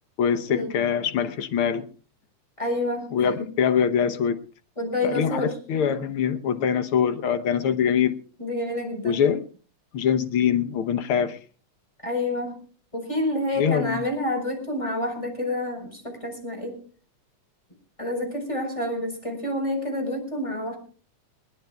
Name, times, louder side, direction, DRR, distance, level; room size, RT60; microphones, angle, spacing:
voice 1, 0.2-1.9 3.1-4.4 5.0-8.1 9.0-9.4 9.9-11.4 13.6-14.0, left 7 dB, 65° left, 10 dB, 1.4 m, -23 dB
voice 2, 2.6-3.3 4.8-5.6 8.4-9.2 12.0-12.6 12.9-16.8 18.0-20.8, left 1 dB, 10° left, 5 dB, 4.4 m, -28 dB
21.0 x 20.0 x 2.3 m, 0.41 s
omnidirectional pair, 3.5 m